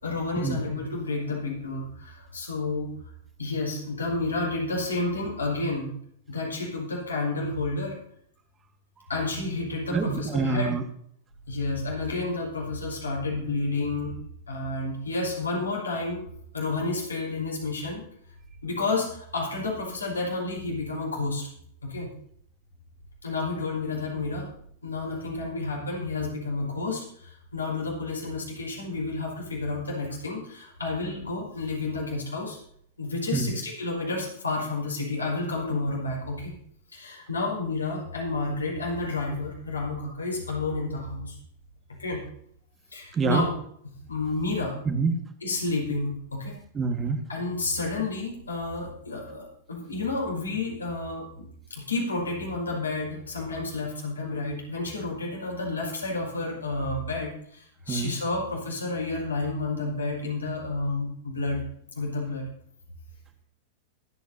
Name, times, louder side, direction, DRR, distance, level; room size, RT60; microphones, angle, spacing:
voice 1, 0.0-2.9 3.4-5.9 6.3-8.0 9.1-10.7 11.5-14.1 14.5-16.2 16.5-18.0 18.6-19.1 19.3-21.4 21.8-22.1 23.2-24.5 24.8-27.0 27.5-32.6 33.0-36.5 36.9-41.3 42.0-42.2 42.9-43.5 44.1-44.7 45.4-46.6 47.3-49.4 49.7-51.2 51.8-57.3 57.9-61.6 62.0-62.4, left 3 dB, 80° left, -2 dB, 5.3 m, -30 dB
voice 2, 9.9-10.8 33.3-33.5 43.1-43.4 44.9-45.1 46.8-47.2 57.9-58.1, right 4 dB, 20° right, 7 dB, 1.7 m, -25 dB
23.5 x 9.1 x 2.8 m, 0.68 s
figure-of-eight pair, 95°, 0 cm